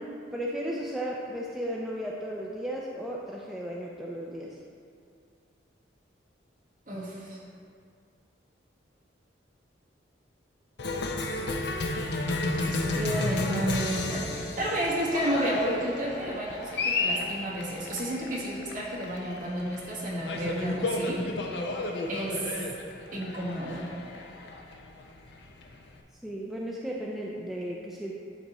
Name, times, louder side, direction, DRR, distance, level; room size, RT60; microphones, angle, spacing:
voice 1, 0.0-4.6 26.2-28.1, equal, ahead, -4 dB, 0.4 m, -35 dB
voice 2, 6.9-7.4 12.6-21.2 22.1-22.6 23.1-23.9, right 1 dB, 45° right, -6 dB, 1.5 m, -31 dB
Cheering, 10.8-26.0, left 2 dB, 60° left, 0.6 m, -32 dB
10.5 x 4.1 x 3.0 m, 2.3 s
head